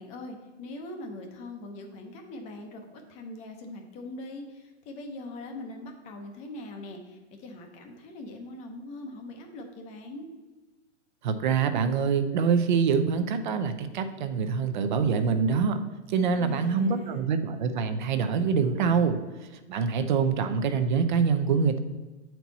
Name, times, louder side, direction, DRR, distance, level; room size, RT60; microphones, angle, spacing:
voice 1, 0.0-10.3 16.2-17.3, left 2 dB, 20° left, 4 dB, 0.7 m, -42 dB
voice 2, 11.2-15.8 16.1-19.2 19.7-21.8, right 6 dB, 45° right, 9 dB, 0.7 m, -25 dB
8.2 x 4.5 x 4.0 m, 1.2 s
hypercardioid pair, 150°, 35 cm